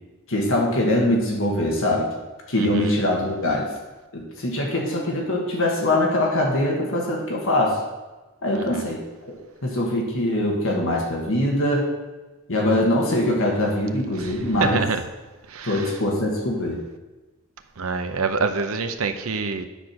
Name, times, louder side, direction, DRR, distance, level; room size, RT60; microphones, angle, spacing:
voice 1, 0.3-2.1 2.5-3.7 4.1-7.8 8.4-9.3 9.6-11.9 12.5-14.8 15.6-16.8, left 1 dB, 65° left, -1 dB, 1.6 m, -23 dB
voice 2, 2.6-2.9 8.5-8.9 14.2-15.0 15.5-15.9 17.8-19.7, right 4 dB, 70° right, 8 dB, 0.7 m, -27 dB
10.0 x 4.4 x 6.3 m, 1.2 s
head